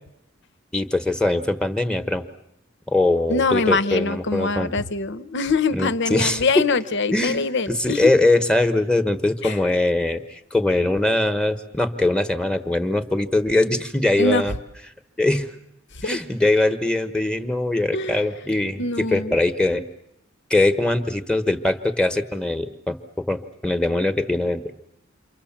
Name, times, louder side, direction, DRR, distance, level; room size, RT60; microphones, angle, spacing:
voice 1, 0.7-2.2 2.9-4.7 5.7-6.4 7.1-7.4 7.7-14.5 15.2-15.5 16.0-19.8 20.5-23.0 23.3-24.6, left 2 dB, 5° left, 8 dB, 1.2 m, -22 dB
voice 2, 3.3-8.1 9.4-9.6 14.2-14.4 16.1-16.2 17.9-18.2 18.8-19.4, left 3 dB, 60° left, 13 dB, 0.9 m, -23 dB
29.0 x 24.5 x 7.3 m, 0.82 s
head